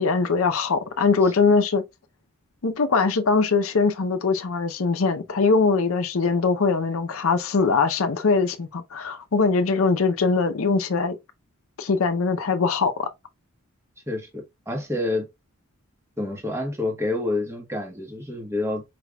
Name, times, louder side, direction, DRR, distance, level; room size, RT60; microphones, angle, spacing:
voice 1, 0.0-1.8 2.6-11.2 11.8-13.1, left 4 dB, 75° left, 0.6 m, -22 dB
voice 2, 14.1-15.3 16.2-18.8, left 2 dB, 10° right, 1.2 m, -28 dB
4.9 x 3.3 x 2.2 m
head